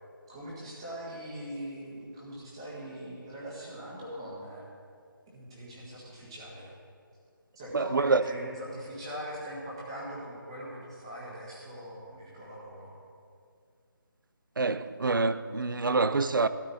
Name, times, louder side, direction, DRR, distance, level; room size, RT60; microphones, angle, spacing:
voice 1, 0.3-4.6 5.3-6.7 7.5-13.0, equal, 15° right, 1.6 m, -41 dB
voice 2, 7.7-8.2 14.6-16.5, right 3 dB, 65° right, 0.6 m, -26 dB
12.5 x 12.0 x 4.2 m
figure-of-eight pair, 180°, 12 cm